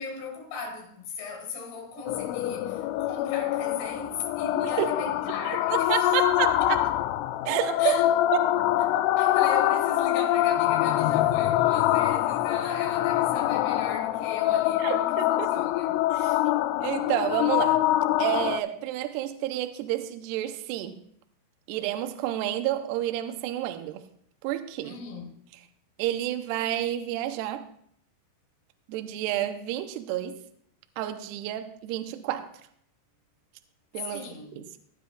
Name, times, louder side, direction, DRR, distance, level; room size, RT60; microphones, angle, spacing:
voice 1, 0.0-6.1 6.6-6.9 7.8-8.1 9.2-16.4 24.8-25.4 34.0-34.6, left 4 dB, 65° left, 3.6 m, -37 dB
sound 1, 2.1-18.6, left 14 dB, 90° left, 3.1 m, -25 dB
voice 2, 5.7-6.6 7.5-8.0 8.3-8.6 14.8-15.5 16.1-16.4 16.8-17.8 18.2-21.0 21.7-24.0 24.4-25.0 26.0-27.7 28.9-30.4 31.0-32.5 33.9-34.3 34.6-34.8, right 13 dB, 85° right, 2.4 m, -30 dB
18.0 x 9.5 x 2.3 m
omnidirectional pair, 5.6 m